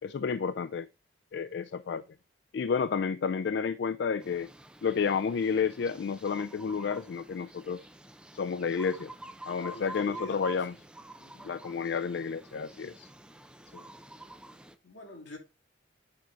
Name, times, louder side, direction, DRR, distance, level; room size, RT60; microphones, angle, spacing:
voice 1, 0.0-0.9 1.3-2.0 2.5-4.5 4.8-7.9 8.3-9.1 9.5-10.7 11.4-13.1 13.7-13.8, left 6 dB, 65° left, 0.3 m, -31 dB
sound 1, 4.2-14.8, right 1 dB, 5° right, 0.5 m, -48 dB
voice 2, 9.6-10.8 11.2-11.5 14.8-15.4, left 1 dB, 80° left, 2.8 m, -46 dB
8.8 x 4.5 x 3.8 m
head